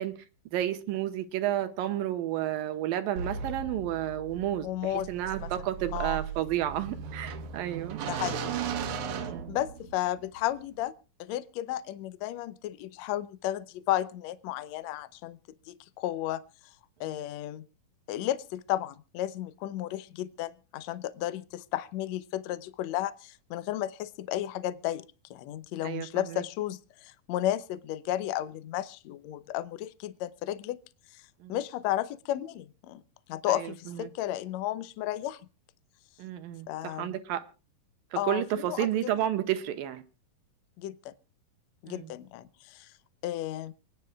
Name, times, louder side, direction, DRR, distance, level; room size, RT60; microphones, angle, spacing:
voice 1, 0.0-8.0 9.1-9.6 25.8-26.4 31.4-31.6 33.5-34.1 36.2-37.5 38.1-40.0 41.9-42.1, right 12 dB, 80° right, 2.8 m, -32 dB
sound 1, 3.2-10.1, right 6 dB, 65° right, 2.2 m, -37 dB
voice 2, 4.6-5.1 5.4-5.5 5.9-6.2 8.1-8.5 9.5-10.9 11.2-15.4 15.7-16.4 17.0-17.6 18.1-25.0 25.3-30.8 31.1-31.2 31.5-33.0 33.3-35.4 36.7-37.1 38.2-39.1 40.8-41.1 41.8-42.9 43.2-43.7, left 13 dB, 85° left, 1.5 m, -33 dB
28.0 x 9.8 x 2.3 m
omnidirectional pair, 4.1 m